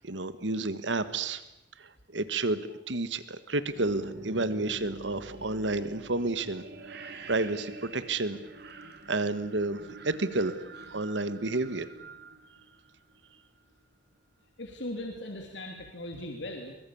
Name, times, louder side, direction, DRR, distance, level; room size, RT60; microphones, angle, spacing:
voice 1, 0.0-1.4 1.8-2.6 2.9-8.4 9.1-10.6 10.9-11.9, right 2 dB, 80° right, 13 dB, 1.5 m, -31 dB
sound 1, 3.5-13.4, right 3 dB, 60° right, 2.9 m, -46 dB
voice 2, 14.6-16.8, left 1 dB, 75° left, 2 dB, 3.2 m, -38 dB
24.0 x 22.0 x 8.7 m, 0.88 s
head